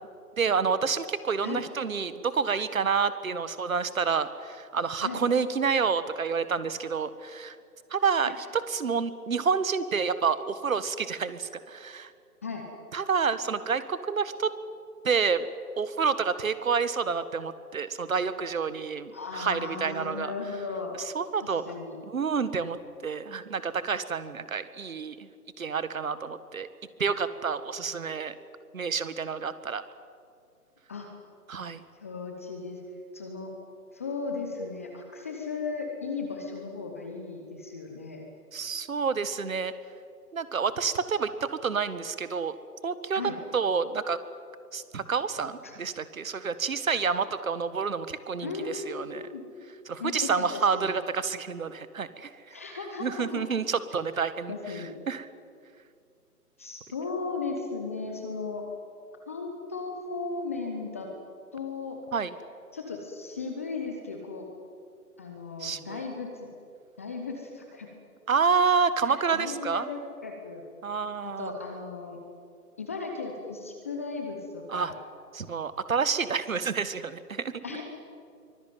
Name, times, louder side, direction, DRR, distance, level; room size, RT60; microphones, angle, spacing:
voice 1, 0.4-7.5 7.9-12.1 12.9-14.5 15.0-15.4 15.8-20.3 21.1-21.6 22.1-22.8 23.0-25.3 25.6-26.7 27.0-28.3 28.7-29.8 31.5-31.8 38.5-39.7 40.3-42.5 42.8-43.2 43.5-44.2 44.7-49.3 49.9-52.3 53.0-54.5 55.1-55.3 62.1-62.3 65.6-66.0 68.3-69.9 70.8-71.5 74.7-74.9 75.3-77.5, right 5 dB, 55° right, 13 dB, 1.6 m, -28 dB
voice 2, 19.1-20.9 21.4-22.0 30.9-31.1 32.0-32.8 33.1-33.5 33.9-38.3 43.1-43.4 45.6-45.7 48.4-49.4 50.0-50.9 52.5-53.6 54.5-54.9 56.6-58.6 59.3-61.1 61.5-62.0 62.7-64.5 65.2-66.5 67.0-67.9 69.0-70.6 71.2-72.2 72.8-75.0 77.6-77.8, left 4 dB, 10° left, 2 dB, 0.7 m, -36 dB
24.0 x 18.5 x 9.2 m, 2.4 s
figure-of-eight pair, 150°, 48 cm